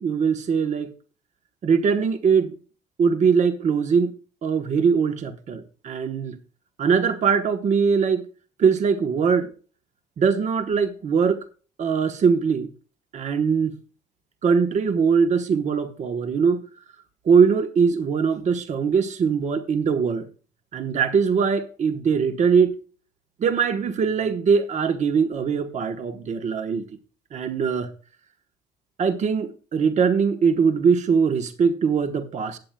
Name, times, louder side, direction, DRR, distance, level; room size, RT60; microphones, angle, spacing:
voice 1, 0.0-0.9 1.6-2.6 3.0-4.1 4.4-6.4 6.8-8.2 8.6-9.5 10.2-11.4 11.8-12.7 13.1-13.8 14.4-16.6 17.2-20.3 20.7-22.8 23.4-26.8 27.3-27.9 29.0-32.6, right 6 dB, 45° right, 1.1 m, -21 dB
15.5 x 8.7 x 2.2 m
cardioid pair, 110°, 17 cm